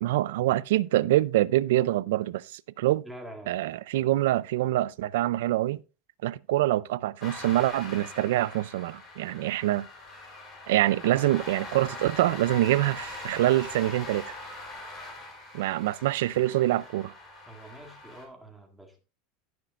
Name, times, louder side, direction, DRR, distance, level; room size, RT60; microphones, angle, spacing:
voice 1, 0.0-3.0 3.5-5.8 6.2-9.9 10.7-14.4 15.5-17.1, right 15 dB, 85° right, 0.4 m, -25 dB
voice 2, 3.0-3.6 17.5-19.0, right 1 dB, 5° right, 1.8 m, -45 dB
sound 1, 7.2-18.3, left 3 dB, 30° left, 3.9 m, -42 dB
17.5 x 6.2 x 2.5 m
supercardioid pair, 160°, 0 cm